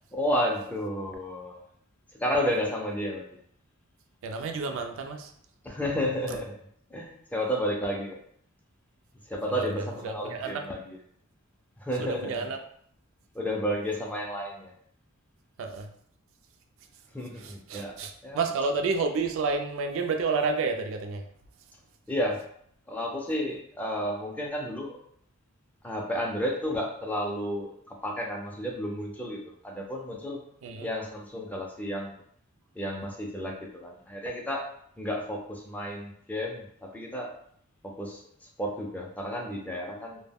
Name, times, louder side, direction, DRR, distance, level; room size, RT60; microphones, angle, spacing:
voice 1, 0.1-1.6 2.2-3.2 5.6-6.5 6.9-8.2 9.3-11.0 11.8-12.5 13.3-14.7 17.1-18.0 18.2-18.4 22.1-22.4 22.9-25.0 25.8-30.4 30.8-32.1 32.8-34.6 35.0-37.3 37.8-38.2 38.6-40.2, equal, 5° left, 0 dB, 0.3 m, -32 dB
voice 2, 4.2-5.3 9.5-9.7 10.0-10.7 12.0-12.6 15.6-15.9 17.4-21.2 30.6-30.9, right 4 dB, 65° right, 5 dB, 0.3 m, -30 dB
2.1 x 2.0 x 3.4 m, 0.65 s
head